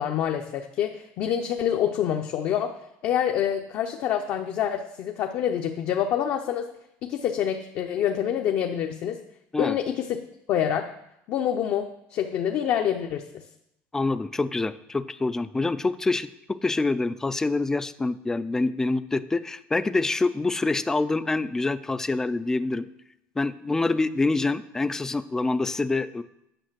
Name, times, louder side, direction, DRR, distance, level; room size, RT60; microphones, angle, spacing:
voice 1, 0.0-2.8 3.0-6.7 7.0-9.2 9.6-10.2 10.5-10.9 11.3-13.4, left 9 dB, 50° left, 3 dB, 0.7 m, -26 dB
voice 2, 13.9-22.9 23.4-26.2, left 3 dB, 10° left, 14 dB, 0.3 m, -26 dB
9.0 x 6.0 x 7.4 m, 0.81 s
cardioid pair, 170°, 6 cm